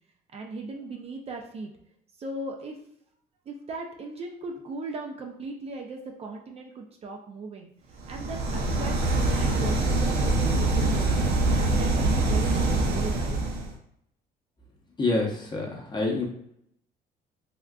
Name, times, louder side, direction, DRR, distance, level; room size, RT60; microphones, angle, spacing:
voice 1, 0.3-1.7 2.2-2.8 3.5-7.7 8.1-8.9 9.3-11.1 11.5-13.4, right 3 dB, 35° right, 2 dB, 0.4 m, -38 dB
sound 1, 8.0-13.7, right 2 dB, 75° right, 0.7 m, -24 dB
voice 2, 15.0-16.3, left 2 dB, 25° left, 0 dB, 0.7 m, -27 dB
3.5 x 2.4 x 2.2 m, 0.71 s
cardioid pair, 110°, 17 cm